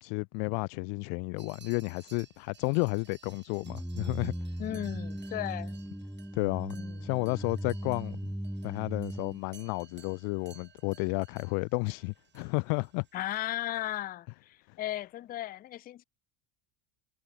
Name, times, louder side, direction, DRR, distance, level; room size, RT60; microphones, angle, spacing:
voice 1, 0.0-4.3 6.3-6.8 7.0-8.2 8.6-13.1, left 40 dB or more, 75° left, 0.6 m, -32 dB
sound 1, 1.4-14.0, right 7 dB, 20° right, 7.4 m, -58 dB
sound 2, 3.6-9.4, equal, ahead, 0.7 m, -38 dB
voice 2, 4.6-5.8 6.7-7.1 13.1-16.0, left 14 dB, 20° left, 0.3 m, -36 dB
cardioid pair, 170°, 47 cm